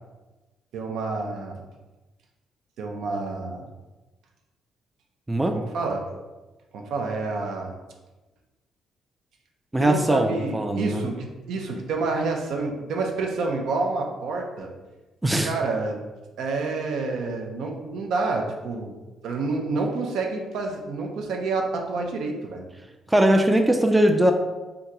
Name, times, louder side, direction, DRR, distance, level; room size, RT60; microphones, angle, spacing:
voice 1, 0.7-1.6 2.8-3.7 5.5-6.1 6.7-7.7 9.8-14.7 15.4-16.0 16.4-19.0 19.2-22.7, right 3 dB, 80° right, 2 dB, 0.5 m, -28 dB
voice 2, 5.3-5.6 9.7-11.0 15.2-15.5 23.1-24.3, right 1 dB, 15° right, 4 dB, 0.3 m, -20 dB
2.8 x 2.3 x 3.6 m, 1.2 s
cardioid pair, 90°, 0 cm